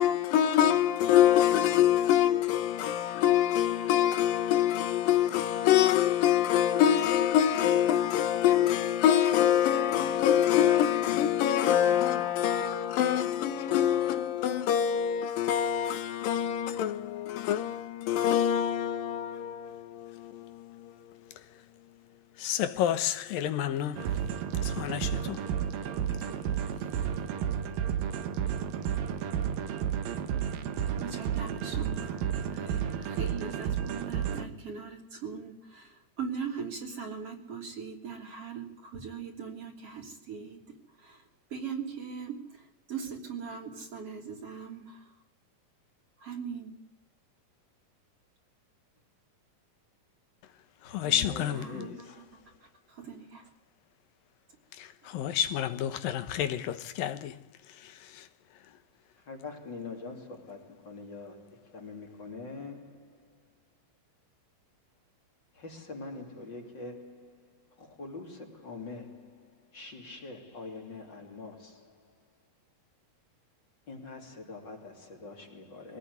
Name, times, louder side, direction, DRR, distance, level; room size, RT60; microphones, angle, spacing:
voice 1, 0.0-21.2 22.4-24.1 24.6-25.4 50.8-52.0 54.8-57.4 57.8-58.2, left 10 dB, 85° left, 2.9 m, -26 dB
sound 1, 24.0-34.5, right 8 dB, 90° right, 3.1 m, -32 dB
voice 2, 31.0-40.6 41.0-41.2 41.5-42.6 42.9-45.0 46.2-46.7 51.5-51.9 52.9-53.4, right 6 dB, 45° right, 3.9 m, -40 dB
voice 3, 50.9-52.2 59.3-63.1 65.6-67.4 67.8-69.5 69.7-71.9 73.9-76.0, left 3 dB, 35° left, 3.4 m, -44 dB
23.5 x 17.5 x 9.6 m
omnidirectional pair, 3.9 m